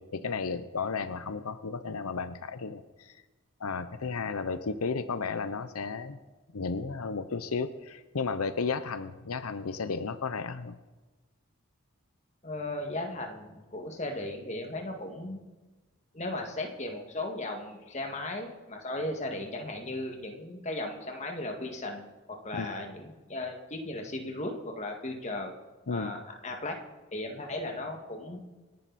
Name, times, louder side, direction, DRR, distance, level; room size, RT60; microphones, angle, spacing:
voice 1, 0.0-3.2 3.6-6.2 6.5-10.8 22.5-22.7 25.9-26.1, left 4 dB, 90° left, 12 dB, 0.7 m, -33 dB
voice 2, 12.4-15.4 16.1-25.5 25.9-26.8 27.1-28.4, left 2 dB, 30° left, 2 dB, 2.0 m, -36 dB
27.0 x 10.5 x 4.2 m, 1.2 s
head